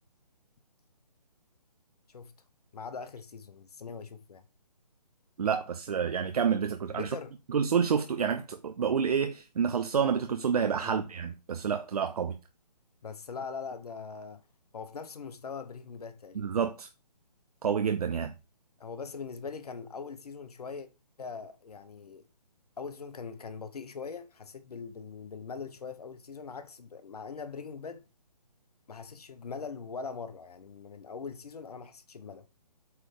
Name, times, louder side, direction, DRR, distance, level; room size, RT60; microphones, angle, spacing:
voice 1, 2.7-4.4 6.9-7.3 10.8-11.0 13.0-14.4 14.7-16.5 18.8-20.9 21.2-22.2 22.8-28.0 28.9-32.5, left 5 dB, 65° left, 1.0 m, -41 dB
voice 2, 5.4-7.1 7.5-12.4 16.4-16.9 17.6-18.3, right 7 dB, 60° right, 0.7 m, -28 dB
8.0 x 3.3 x 5.0 m
figure-of-eight pair, 150°, 21 cm